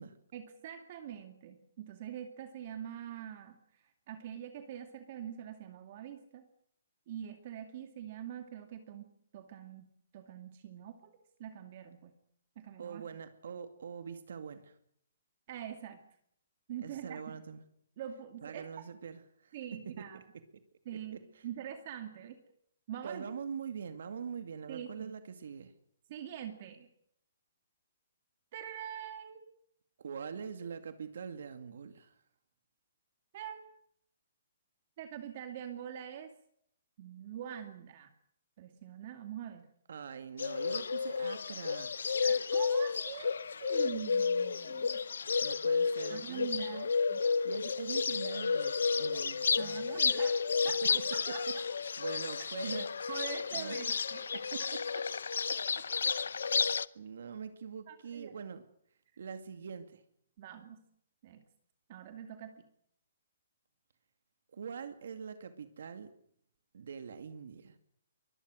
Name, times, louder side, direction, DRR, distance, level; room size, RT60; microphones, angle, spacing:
voice 1, 0.3-6.5 7.1-9.9 10.1-11.1 11.4-12.1 12.6-13.0 15.5-16.0 16.7-17.4 18.0-18.7 19.5-20.2 20.9-22.4 22.9-23.3 24.7-25.1 26.1-26.9 28.5-29.4 33.3-33.6 35.0-36.3 37.0-38.1 38.6-39.7 42.2-45.0 46.1-47.2 49.6-51.4 53.1-54.7 57.9-58.3 60.4-60.8 61.2-61.4 61.9-62.7, right 10 dB, 40° right, 6 dB, 2.4 m, -44 dB
voice 2, 12.8-14.8 16.8-17.6 18.4-20.1 20.3-20.4 20.9-21.4 23.0-25.7 30.0-32.1 39.9-41.9 45.4-46.9 47.4-49.9 50.8-51.6 52.0-52.9 53.5-53.8 54.5-54.6 55.5-55.8 56.4-58.6 59.2-60.0 64.5-66.1 66.7-67.8, right 6 dB, 70° right, 8 dB, 2.3 m, -44 dB
Bird, 40.4-56.9, left 5 dB, 90° left, 0.8 m, -32 dB
24.0 x 21.5 x 6.5 m, 0.69 s
hypercardioid pair, 165°, 0 cm